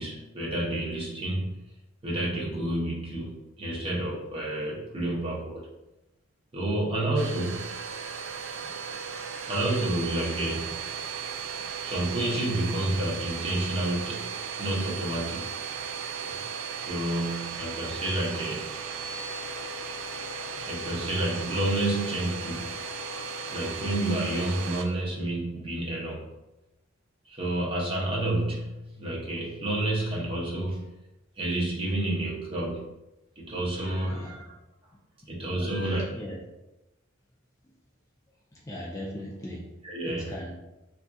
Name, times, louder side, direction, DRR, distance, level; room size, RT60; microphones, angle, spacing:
voice 1, 0.0-1.6 2.0-5.7 6.5-7.7 9.5-10.9 11.8-14.3 14.6-15.5 16.2-16.4 16.8-18.7 20.6-22.8 23.5-26.3 27.3-30.9 31.4-32.9 33.4-34.5 35.3-36.0 39.8-40.3, right 1 dB, 25° right, -4 dB, 0.8 m, -30 dB
Domestic sounds home sounds, 7.2-24.9, right 6 dB, 75° right, 0.4 m, -36 dB
voice 2, 34.1-34.5 36.1-36.4 38.5-39.7 40.1-40.5, equal, 15° left, -3 dB, 0.4 m, -38 dB
3.6 x 2.6 x 2.3 m, 0.97 s
head